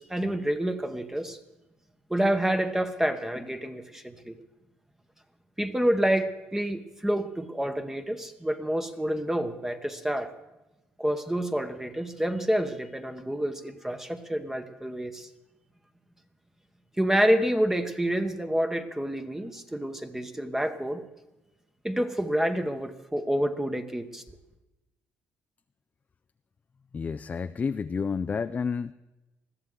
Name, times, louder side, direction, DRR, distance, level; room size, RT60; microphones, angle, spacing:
voice 1, 0.0-1.4 2.1-4.4 5.6-10.3 11.0-15.3 17.0-21.1 21.8-24.2, right 1 dB, 10° right, 7 dB, 1.0 m, -28 dB
voice 2, 26.9-28.9, left 5 dB, 30° left, 10 dB, 0.4 m, -30 dB
20.5 x 13.5 x 3.7 m, 1.0 s
cardioid pair, 95°, 5 cm